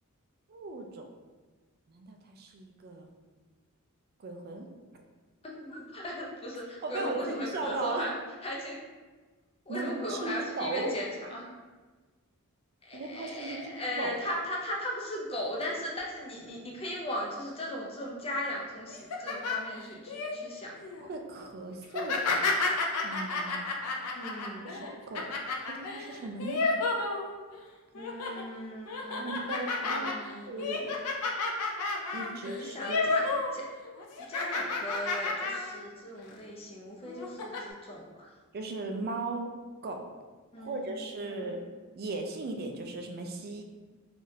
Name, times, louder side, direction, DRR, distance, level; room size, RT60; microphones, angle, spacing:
voice 1, 0.5-1.1 1.9-3.1 4.2-4.7 6.8-8.1 9.7-10.9 12.9-14.2 21.0-22.5 23.0-23.7 24.6-25.3 25.7-26.6 29.2-30.2 30.5-31.0 32.1-33.1 38.5-39.5 39.8-40.1 40.6-41.6 42.0-43.6, right 2 dB, 45° right, 4 dB, 0.4 m, -37 dB
voice 2, 5.4-8.1 8.4-8.8 9.7-11.6 12.8-20.7 24.1-24.8 27.9-29.3 29.8-30.9 32.3-33.6 34.3-38.3 40.5-41.6, equal, 25° left, -3 dB, 0.5 m, -37 dB
sound 1, 18.9-20.3 20.8-21.1 21.9-27.6 27.9-28.4 28.9-33.6 33.8-35.8 36.2-36.3 37.1-37.6, left 3 dB, 85° left, 0.4 m, -31 dB
3.5 x 2.4 x 2.7 m, 1.3 s
head